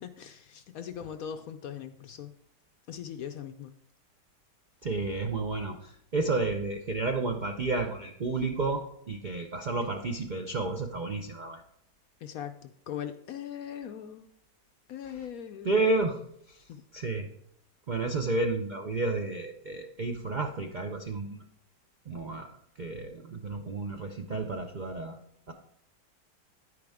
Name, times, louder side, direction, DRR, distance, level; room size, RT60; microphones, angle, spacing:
voice 1, 0.0-2.3 2.9-3.7 12.2-14.3 14.9-15.9 16.7-16.8, left 9 dB, 70° left, 8 dB, 0.9 m, -40 dB
voice 2, 4.8-11.6 15.1-15.2 15.6-16.2 16.9-17.3 17.9-21.4 22.1-22.5 22.8-25.2 25.5-25.6, right 3 dB, 65° right, 4 dB, 0.4 m, -31 dB
10.0 x 9.6 x 3.6 m, 0.72 s
omnidirectional pair, 1.9 m